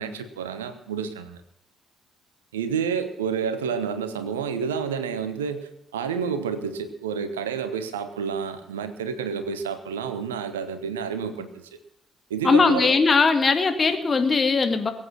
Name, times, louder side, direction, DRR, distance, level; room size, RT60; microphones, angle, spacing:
voice 1, 0.0-1.4 2.5-11.7 12.3-13.0, right 6 dB, 75° right, 10 dB, 1.0 m, -29 dB
voice 2, 12.4-14.9, left 4 dB, 35° left, 7 dB, 1.9 m, -19 dB
21.5 x 8.7 x 6.0 m, 0.76 s
figure-of-eight pair, 45°, 0 cm